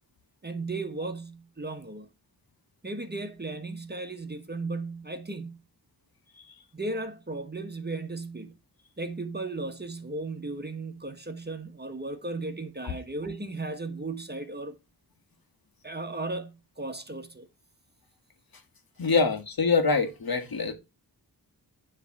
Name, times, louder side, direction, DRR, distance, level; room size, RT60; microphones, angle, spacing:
voice 1, 0.4-2.1 2.8-5.6 6.7-8.5 9.0-14.8 15.8-17.5, right 2 dB, 25° right, 1.1 m, -35 dB
voice 2, 19.0-20.7, left 4 dB, 65° left, 1.6 m, -24 dB
10.0 x 3.4 x 4.6 m
wide cardioid pair, 90°, 39 cm